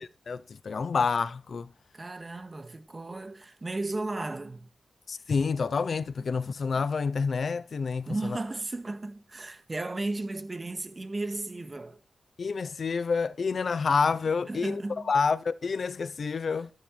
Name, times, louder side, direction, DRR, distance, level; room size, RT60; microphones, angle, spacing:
voice 1, 0.0-1.7 5.1-8.4 12.4-14.8 15.1-16.7, left 5 dB, 60° left, 0.6 m, -28 dB
voice 2, 1.9-4.7 8.0-12.0 14.5-15.1, right 2 dB, 30° right, 1.8 m, -35 dB
13.0 x 10.5 x 3.3 m
wide cardioid pair, 110°, 0 cm